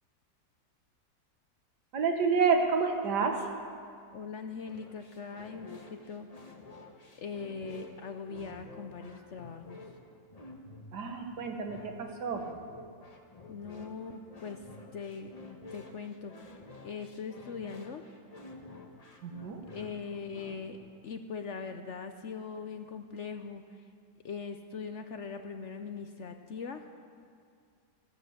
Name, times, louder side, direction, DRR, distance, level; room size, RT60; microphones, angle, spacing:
voice 1, 1.9-3.5 10.9-12.4 19.2-19.6, right 5 dB, 85° right, 4 dB, 1.9 m, -29 dB
voice 2, 4.1-6.3 7.2-9.8 13.5-14.6 14.9-15.3 15.7-16.6 16.8-18.0 19.7-20.8 21.0-23.8 24.2-26.8, left 5 dB, 60° left, 7 dB, 0.8 m, -41 dB
sound 1, 4.6-20.8, left 3 dB, 25° left, 1.2 m, -50 dB
14.0 x 11.5 x 7.1 m, 2.3 s
omnidirectional pair, 1.8 m